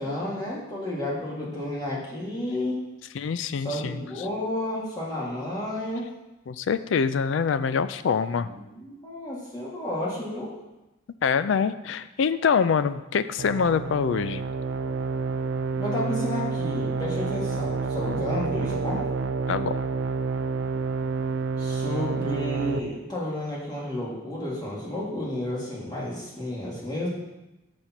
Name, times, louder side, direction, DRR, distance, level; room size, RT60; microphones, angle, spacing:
voice 1, 0.0-2.8 3.6-6.1 8.4-10.5 15.8-19.1 21.6-27.1, left 1 dB, 20° left, -5 dB, 1.8 m, -31 dB
voice 2, 3.1-4.3 6.5-8.5 11.2-14.4 19.5-19.7, left 6 dB, 65° left, 13 dB, 0.4 m, -25 dB
sound 1, 13.4-22.8, right 4 dB, 65° right, 0.4 m, -29 dB
6.6 x 4.2 x 5.9 m, 0.98 s
head